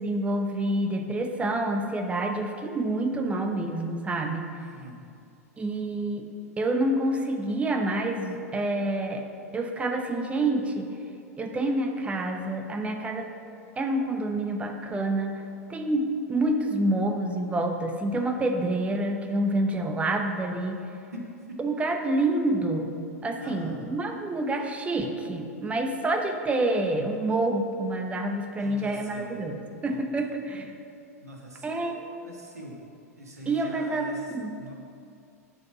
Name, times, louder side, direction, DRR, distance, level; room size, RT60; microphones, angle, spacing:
voice 1, 0.0-4.5 5.6-6.2 6.6-9.2 9.5-10.9 11.4-13.3 13.8-15.3 15.7-20.8 21.6-22.9 23.2-30.7 31.6-32.0 33.5-34.6, right 2 dB, 15° right, 4 dB, 0.9 m, -27 dB
voice 2, 4.6-5.0 21.1-21.7 23.4-23.9 28.5-29.3 29.9-30.3 31.2-32.8 33.1-34.7, equal, 75° right, 0 dB, 1.7 m, -43 dB
11.5 x 5.3 x 5.7 m, 2.5 s
figure-of-eight pair, 90°, 8 cm